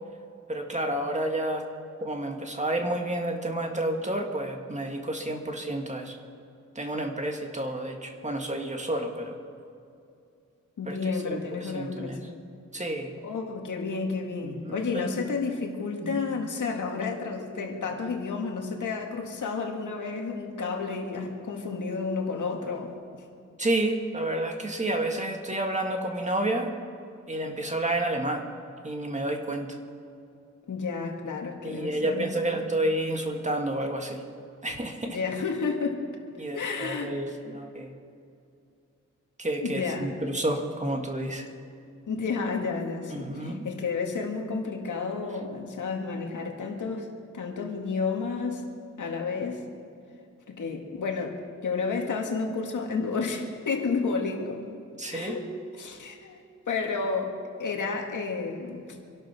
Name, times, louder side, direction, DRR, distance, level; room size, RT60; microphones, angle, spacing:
voice 1, 0.5-1.7 2.0-6.2 6.8-9.4 10.9-11.0 11.2-12.2 12.7-13.1 14.4-15.1 16.0-16.2 23.6-26.7 27.3-28.5 28.8-29.8 31.6-34.2 34.6-35.2 36.4-38.0 39.4-41.5 43.1-43.6 55.0-55.4, right 1 dB, 25° right, 3 dB, 1.9 m, -30 dB
voice 2, 10.8-12.3 13.2-22.9 30.7-32.7 35.1-36.0 36.5-37.1 39.6-40.1 42.1-47.1 47.3-48.6 49.0-49.6 50.5-54.6 55.1-55.4 55.8-56.4 56.7-58.9, left 4 dB, 80° left, 2 dB, 2.1 m, -31 dB
26.0 x 12.0 x 4.4 m, 2.5 s
wide cardioid pair, 110°, 30 cm